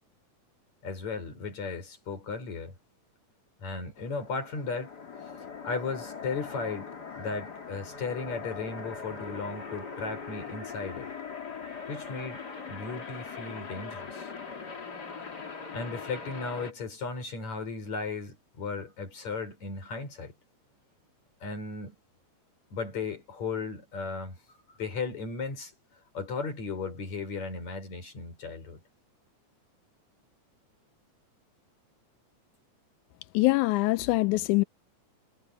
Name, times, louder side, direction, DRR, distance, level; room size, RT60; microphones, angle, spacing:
voice 1, 0.8-2.7 3.6-4.9 5.6-11.1 11.9-12.4 12.7-14.3 15.7-20.3 21.4-21.9 22.7-24.4 24.8-25.7 26.1-28.8, left 4 dB, 65° left, 6.7 m, -36 dB
sound 1, 4.0-16.7, left 5 dB, 35° left, 3.3 m, -41 dB
voice 2, 33.3-34.6, left 21 dB, 85° left, 2.0 m, -24 dB
omnidirectional pair, 3.5 m